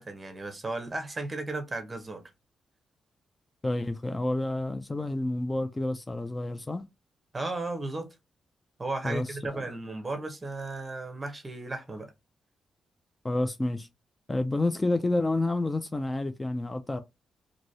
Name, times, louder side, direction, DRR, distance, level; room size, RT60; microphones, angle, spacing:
voice 1, 0.0-2.2 7.3-8.1 8.8-12.1, right 2 dB, 25° right, 0.8 m, -35 dB
voice 2, 3.6-6.8 9.0-9.6 13.2-13.9 14.3-17.0, left 2 dB, 20° left, 0.3 m, -29 dB
3.0 x 2.6 x 2.7 m
cardioid pair, 100°, 0 cm